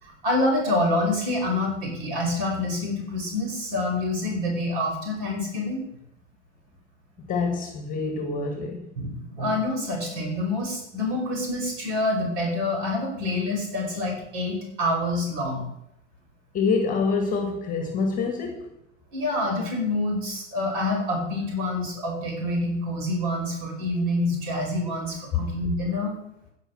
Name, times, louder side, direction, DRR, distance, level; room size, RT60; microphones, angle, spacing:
voice 1, 0.0-5.8 9.0-15.7 19.1-26.2, left 1 dB, 45° right, 5.6 m, -27 dB
voice 2, 7.2-8.9 16.5-18.7, left 4 dB, 20° left, 1.9 m, -26 dB
15.5 x 5.3 x 6.3 m
figure-of-eight pair, 105°, 38 cm